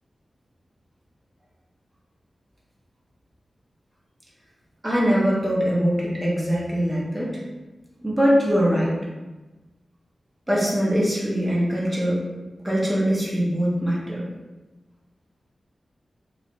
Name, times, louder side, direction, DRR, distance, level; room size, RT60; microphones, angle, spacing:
voice 1, 4.8-7.4 8.0-8.9 10.5-12.2 12.6-14.2, equal, 10° right, -6 dB, 0.6 m, -22 dB
2.6 x 2.2 x 2.9 m, 1.2 s
wide cardioid pair, 150°, 0 cm